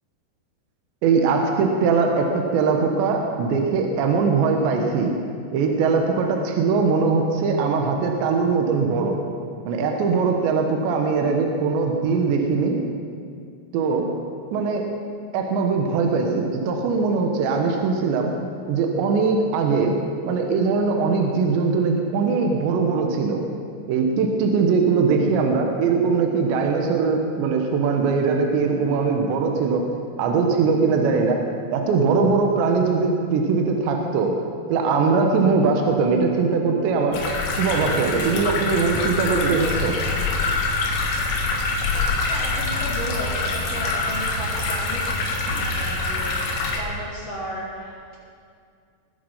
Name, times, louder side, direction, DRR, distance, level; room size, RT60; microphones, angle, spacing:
voice 1, 1.0-5.1 5.5-9.2 9.7-12.8 13.7-14.1 14.5-14.9 15.3-18.3 18.7-20.0 20.2-23.4 23.9-29.8 30.2-31.4 31.7-34.3 34.7-37.2 37.6-40.0 45.5-45.6, right 4 dB, 75° right, 2 dB, 3.3 m, -21 dB
sound 1, 37.1-46.8, left 3 dB, 80° left, 4.1 m, -25 dB
voice 2, 42.3-48.2, left 1 dB, 45° left, -4 dB, 2.5 m, -34 dB
21.5 x 8.6 x 5.6 m, 2.3 s
omnidirectional pair, 5.5 m